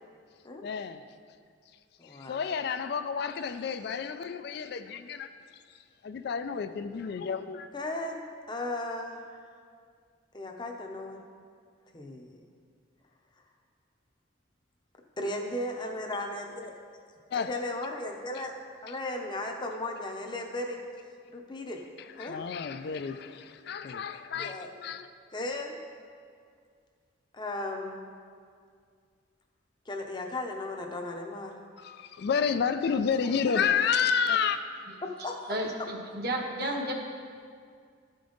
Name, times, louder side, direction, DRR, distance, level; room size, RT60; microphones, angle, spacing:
voice 1, 0.6-1.0 2.0-5.3 6.0-7.7 17.3-17.5 18.9-19.0 22.0-25.1 31.8-34.6, left 6 dB, 55° left, 10 dB, 0.3 m, -30 dB
voice 2, 2.0-2.6 7.7-9.4 10.3-11.2 11.9-12.4 15.2-16.7 17.3-18.6 18.8-20.8 21.3-21.8 22.2-22.3 24.4-24.7 25.3-25.8 27.3-28.1 29.9-31.5 35.0-35.4 36.6-36.7, left 1 dB, 25° left, 2 dB, 0.7 m, -36 dB
voice 3, 35.5-36.9, right 1 dB, 55° right, 0 dB, 1.1 m, -32 dB
13.0 x 5.2 x 3.9 m, 2.1 s
head